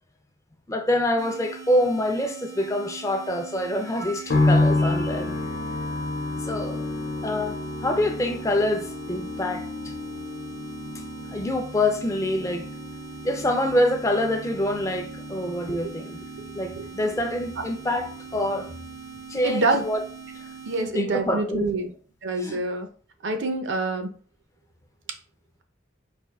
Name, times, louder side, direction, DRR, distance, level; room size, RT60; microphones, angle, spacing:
voice 1, 0.7-5.4 6.4-6.8 7.2-9.9 11.3-12.7 13.2-16.2 16.5-18.7 19.3-20.0 20.8-21.7 22.4-22.6, left 1 dB, 15° left, 0.4 m, -26 dB
sound 1, 1.2-20.9, right 6 dB, 90° right, 1.3 m, -42 dB
sound 2, 4.3-19.5 19.8-20.7, left 2 dB, 65° left, 0.5 m, -30 dB
voice 2, 19.4-19.8 20.7-21.9 22.2-22.9 23.2-24.1, right 2 dB, 70° right, 0.6 m, -26 dB
4.3 x 2.6 x 3.5 m
head